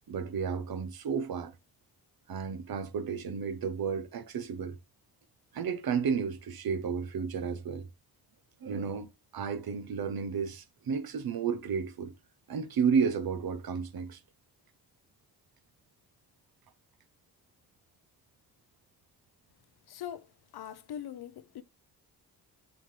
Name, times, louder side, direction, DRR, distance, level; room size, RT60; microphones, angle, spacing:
voice 1, 0.1-1.5 2.3-4.8 5.5-7.9 8.6-12.1 12.5-14.2, right 6 dB, 65° right, 1.0 m, -32 dB
voice 2, 19.9-20.3 20.5-21.6, left 10 dB, 75° left, 0.8 m, -41 dB
7.6 x 4.7 x 3.2 m
cardioid pair, 65°, 38 cm